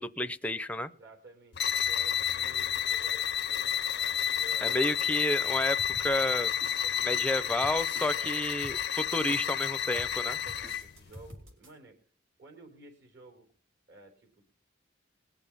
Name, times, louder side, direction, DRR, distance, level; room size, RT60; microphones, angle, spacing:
voice 1, 0.0-0.9 4.6-6.5 7.0-10.4, left 1 dB, 5° left, 12 dB, 0.6 m, -31 dB
voice 2, 1.0-5.3 6.8-7.5 8.0-8.5 9.1-9.6 10.0-12.0 12.4-13.5 13.9-14.5, right 2 dB, 60° right, 3 dB, 4.2 m, -53 dB
sound 1, 1.5-10.9, left 9 dB, 60° left, 0.6 m, -30 dB
sound 2, 5.4-11.7, equal, 90° right, 4.3 m, -49 dB
20.5 x 7.1 x 5.5 m, 0.39 s
head